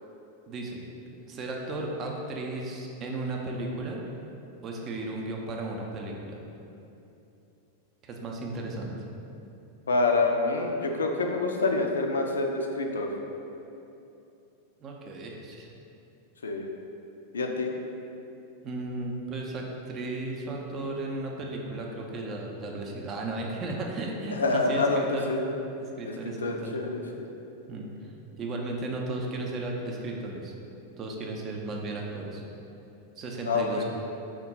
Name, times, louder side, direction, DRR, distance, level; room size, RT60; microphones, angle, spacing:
voice 1, 0.5-0.8 1.3-4.0 4.6-6.4 8.0-8.9 14.8-15.7 18.6-25.3 25.8-26.8 27.7-30.5 31.0-32.4 33.2-33.8, right 2 dB, 30° right, 0 dB, 0.5 m, -35 dB
voice 2, 9.9-13.1 16.4-16.7 17.3-17.7 24.3-25.0 25.3-25.4 26.4-27.3 33.5-33.8, left 3 dB, 70° left, 3 dB, 0.3 m, -26 dB
3.5 x 2.2 x 4.1 m, 2.9 s
figure-of-eight pair, 90°, 0 cm